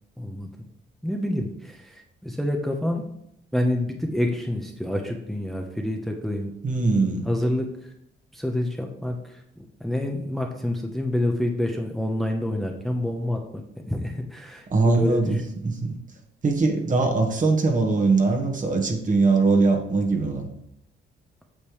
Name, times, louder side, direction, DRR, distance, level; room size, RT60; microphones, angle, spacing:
voice 1, 0.2-0.5 1.0-3.0 3.5-6.5 7.2-7.9 8.3-9.4 9.8-13.6 13.9-15.5, left 1 dB, ahead, 2 dB, 0.9 m, -27 dB
voice 2, 6.6-7.3 14.7-15.4 15.6-15.9 16.4-20.5, right 3 dB, 40° right, 3 dB, 1.6 m, -21 dB
8.6 x 6.6 x 3.2 m, 0.75 s
cardioid pair, 90°, 20 cm